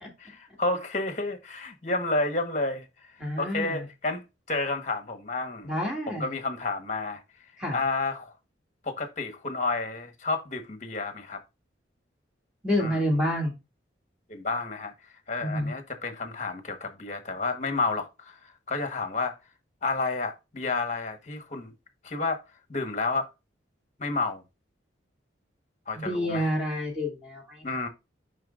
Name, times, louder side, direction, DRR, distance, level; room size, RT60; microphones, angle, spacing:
voice 1, 0.2-2.9 3.4-4.2 4.5-5.7 6.1-7.2 7.7-8.3 8.8-11.4 12.8-13.0 14.3-14.9 15.3-19.3 19.8-21.7 22.0-22.4 22.7-23.3 24.0-24.4 25.9-26.5 27.6-27.9, left 3 dB, 40° left, 1.2 m, -30 dB
voice 2, 3.2-3.9 5.6-6.3 7.6-7.8 12.6-13.5 15.4-15.7 26.0-27.9, equal, 5° right, 2.4 m, -29 dB
7.5 x 5.6 x 2.5 m
head